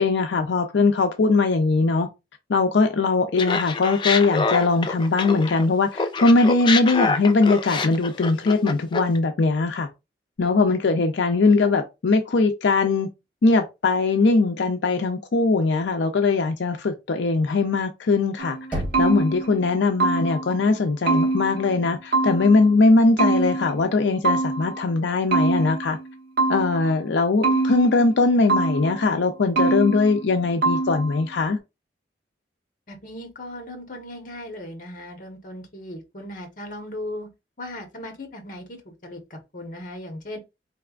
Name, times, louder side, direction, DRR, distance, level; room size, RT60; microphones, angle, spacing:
voice 1, 0.0-2.1 2.5-9.9 10.4-13.1 13.4-26.0 26.5-31.6, left 3 dB, 90° left, 0.5 m, -20 dB
Laughter, 3.4-5.7 6.0-9.2, left 4 dB, 25° left, 0.3 m, -26 dB
sound 1, 18.4-20.6 21.1-22.7 23.2-24.9 25.3-27.0 27.4-29.1 29.6-30.4 30.6-31.2, right 3 dB, 60° right, 1.1 m, -24 dB
Knock, 18.7-19.6, equal, 10° right, 1.6 m, -31 dB
voice 2, 32.9-37.3 37.6-40.4, left 1 dB, 50° left, 1.1 m, -37 dB
4.1 x 3.3 x 2.4 m
head